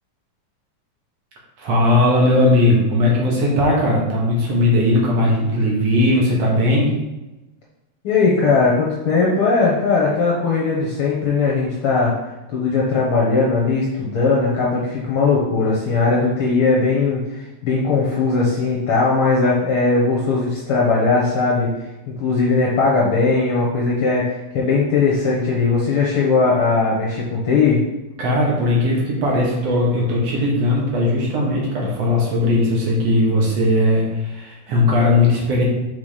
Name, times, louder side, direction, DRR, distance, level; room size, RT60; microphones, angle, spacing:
voice 1, 1.6-7.0 28.2-35.7, left 1 dB, 60° right, -3 dB, 2.3 m, -18 dB
voice 2, 8.0-12.1 12.5-21.7 22.2-27.8, left 4 dB, 60° left, -3 dB, 1.5 m, -19 dB
5.9 x 4.2 x 4.9 m, 1.0 s
omnidirectional pair, 3.4 m